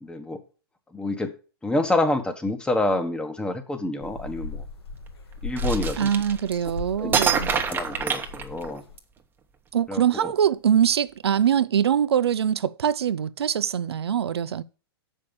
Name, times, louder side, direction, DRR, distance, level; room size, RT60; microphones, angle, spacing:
voice 1, 0.0-0.4 0.9-1.3 1.6-4.6 5.4-6.1 7.0-7.1 7.7-8.8 9.9-10.3, left 2 dB, 5° left, 1.1 m, -27 dB
sound 1, 4.0-8.9, left 2 dB, 80° left, 1.9 m, -35 dB
sound 2, 5.6-6.7 7.1-9.0, right 6 dB, 15° right, 1.0 m, -26 dB
voice 2, 6.0-7.5 9.7-14.6, right 9 dB, 85° right, 0.5 m, -23 dB
6.7 x 5.5 x 6.8 m
hypercardioid pair, 130°, 13 cm